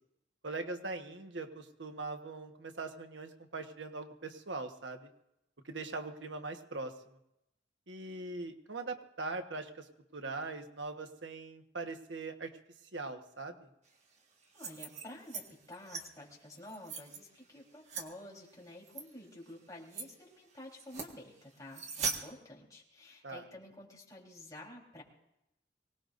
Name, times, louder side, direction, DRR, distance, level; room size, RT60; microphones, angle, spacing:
voice 1, 0.4-5.1 5.6-6.9 7.9-9.9 10.1-12.5 12.9-13.7 23.2-23.4, right 3 dB, 85° right, 5 dB, 1.4 m, -41 dB
sound 1, 14.4-15.4 15.7-16.0 16.6-17.2 17.9-18.1 18.9-19.0 19.5-19.6 19.9-20.1 20.8-21.1 21.7-22.2, right 5 dB, 40° right, 1.7 m, -39 dB
voice 2, 14.5-25.0, left 1 dB, 20° left, -3 dB, 3.9 m, -50 dB
24.0 x 18.5 x 2.6 m, 0.83 s
head